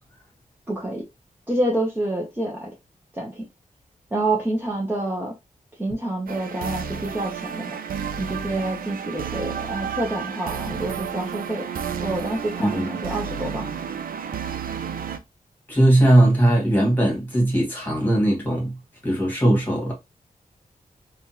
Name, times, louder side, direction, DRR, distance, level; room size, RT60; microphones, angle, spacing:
voice 1, 0.7-1.0 1.5-2.7 3.1-3.4 4.1-5.3 5.8-7.8 8.2-11.7 12.0-13.7, right 1 dB, 15° right, 0.7 m, -27 dB
sound 1, 6.3-15.2, right 7 dB, 90° right, 0.4 m, -31 dB
voice 2, 15.7-18.8 19.0-19.9, right 1 dB, 15° left, 1.4 m, -19 dB
3.4 x 2.3 x 2.7 m
wide cardioid pair, 160°, 14 cm